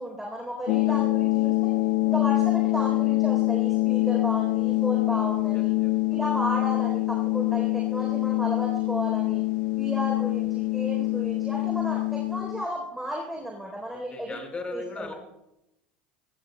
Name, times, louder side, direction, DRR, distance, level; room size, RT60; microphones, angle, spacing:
voice 1, 0.0-1.5 2.0-5.7 6.1-9.4 9.7-14.4 14.7-15.1, equal, 5° right, -1 dB, 3.8 m, -33 dB
sound 1, 0.7-12.6, left 20 dB, 65° left, 0.7 m, -25 dB
voice 2, 0.7-1.0 5.5-5.9 14.1-15.1, left 3 dB, 25° left, 3 dB, 4.9 m, -38 dB
23.0 x 20.0 x 2.3 m, 0.87 s
hypercardioid pair, 85°, 5 cm